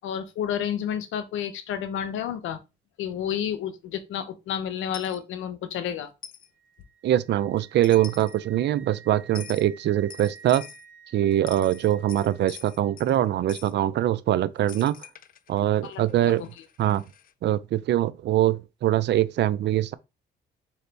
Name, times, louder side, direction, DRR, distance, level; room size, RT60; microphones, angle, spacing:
voice 1, 0.0-2.6 3.0-6.1 15.8-16.5, left 9 dB, 80° left, 0.7 m, -31 dB
Coin (dropping), 4.9-5.2 6.2-6.5 7.6-7.7 7.8-8.4 9.3-9.7 10.1-10.9 11.3-13.2 13.5-13.7 14.7-17.3, left 9 dB, 45° left, 0.4 m, -45 dB
Wind instrument woodwind instrument, 6.5-12.5, right 6 dB, 15° left, 2.0 m, -51 dB
voice 2, 7.0-10.7 11.1-15.1 15.5-16.5 16.8-17.0 17.4-19.9, right 12 dB, 60° right, 0.4 m, -23 dB
3.8 x 2.8 x 3.3 m
cardioid pair, 90°, 20 cm